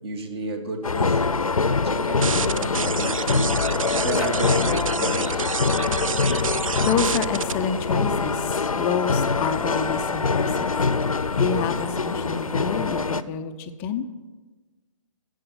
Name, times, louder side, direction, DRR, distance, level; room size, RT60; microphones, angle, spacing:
voice 1, 0.0-1.2 1.6-3.6 4.0-5.5, right 2 dB, 50° right, 6 dB, 1.9 m, -32 dB
sound 1, 0.8-13.2, left 4 dB, 85° left, 0.6 m, -24 dB
sound 2, 2.2-7.5, right 6 dB, 75° right, 0.4 m, -29 dB
voice 2, 5.7-6.2 6.4-10.7 11.1-14.1, left 6 dB, 10° left, 8 dB, 0.4 m, -29 dB
13.0 x 8.0 x 6.3 m, 1.3 s
figure-of-eight pair, 135°, 17 cm